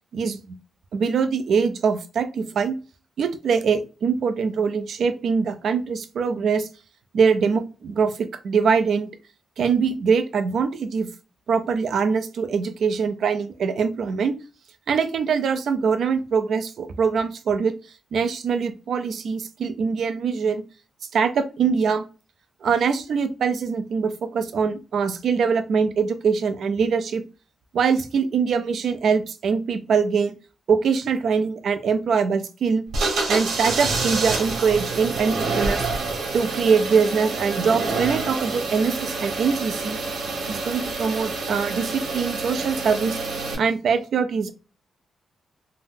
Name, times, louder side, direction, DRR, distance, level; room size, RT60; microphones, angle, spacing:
voice 1, 0.1-0.6 0.9-2.7 3.2-6.7 7.1-9.1 9.6-11.1 11.5-14.3 14.9-17.7 18.1-20.6 21.1-22.1 22.6-27.2 27.7-30.3 30.7-32.8 33.3-35.9 36.3-40.0 40.5-43.2 43.5-44.5, right 5 dB, 60° right, 9 dB, 0.4 m, -23 dB
sound 1, 32.9-43.5, right 3 dB, 80° right, 1.0 m, -27 dB
2.6 x 2.0 x 3.6 m, 0.33 s
wide cardioid pair, 165°, 0 cm